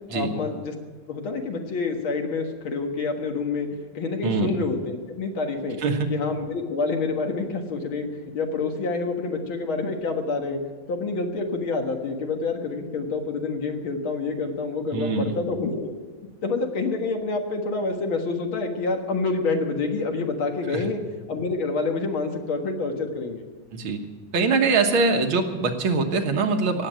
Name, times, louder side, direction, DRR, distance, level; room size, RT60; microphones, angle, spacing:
voice 1, 0.1-0.7 1.1-3.7 3.9-5.8 6.1-8.1 8.3-10.6 10.9-15.9 16.4-21.0 21.3-23.4, left 3 dB, 85° left, 3 dB, 2.5 m, -27 dB
voice 2, 14.9-15.3 20.7-20.8 23.7-24.0 24.3-26.9, right 4 dB, 85° right, 4 dB, 2.2 m, -23 dB
17.5 x 7.8 x 9.1 m, 1.4 s
omnidirectional pair, 2.2 m